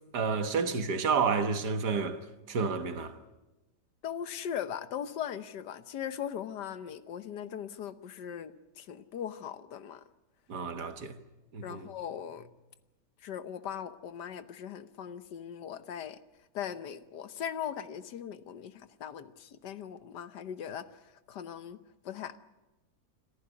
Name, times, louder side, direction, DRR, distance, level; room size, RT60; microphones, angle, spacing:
voice 1, 0.1-2.2 2.5-3.2 10.5-11.2 11.5-11.9, right 5 dB, 70° right, 2.0 m, -30 dB
voice 2, 4.0-10.0 11.6-12.5 13.2-16.2 16.5-21.8 22.0-22.4, left 9 dB, 80° left, 1.6 m, -39 dB
26.0 x 14.5 x 9.7 m
omnidirectional pair, 1.8 m